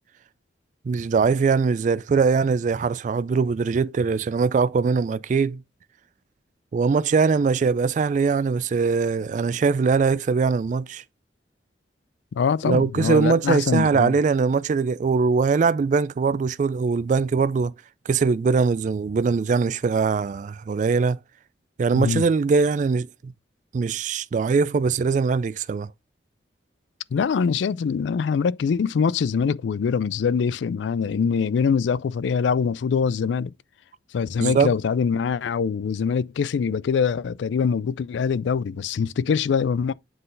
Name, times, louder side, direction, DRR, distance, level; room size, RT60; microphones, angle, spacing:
voice 1, 0.9-5.6 6.7-11.0 12.6-17.7 18.1-21.2 21.8-23.3 23.7-25.9 34.4-34.7, right 5 dB, 45° right, 0.3 m, -21 dB
voice 2, 12.3-14.1 21.9-22.2 27.1-33.5 34.1-39.9, left 6 dB, 85° left, 0.4 m, -23 dB
7.7 x 3.9 x 3.8 m
head